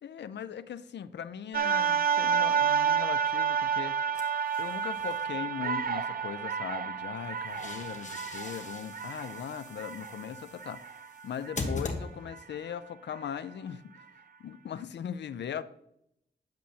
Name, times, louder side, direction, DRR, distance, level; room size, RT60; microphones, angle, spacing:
voice 1, 0.0-4.0 4.6-10.8 11.2-14.1 14.4-15.6, left 8 dB, 90° left, 0.5 m, -39 dB
sound 1, 1.5-11.7 12.3-12.4, right 7 dB, 60° right, 0.5 m, -30 dB
sound 2, 4.1-5.2 7.2-12.6, left 3 dB, 45° left, 1.3 m, -41 dB
10.5 x 7.5 x 2.8 m
wide cardioid pair, 105°, 18 cm